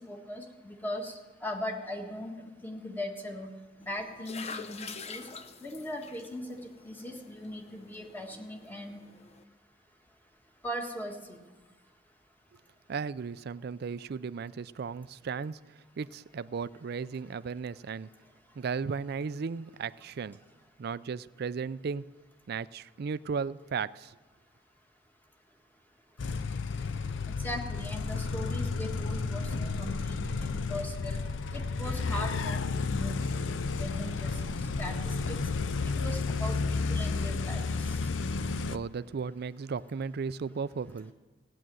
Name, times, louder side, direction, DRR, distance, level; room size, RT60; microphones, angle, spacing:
voice 1, 0.1-1.1 1.4-2.3 2.6-3.5 3.8-5.2 5.6-6.4 6.8-9.0 10.6-11.4 27.3-31.2 31.5-34.4 34.8-35.4 35.8-37.9, left 1 dB, 10° left, 2 dB, 1.7 m, -39 dB
sound 1, 3.8-9.4, left 5 dB, 35° left, 0.7 m, -46 dB
voice 2, 12.9-18.1 18.6-20.4 20.8-22.0 22.5-24.2 38.7-41.1, right 5 dB, 55° right, 16 dB, 0.4 m, -35 dB
sound 2, 26.2-38.8, left 4 dB, 85° left, 0.5 m, -32 dB
17.0 x 9.7 x 7.7 m, 1.3 s
head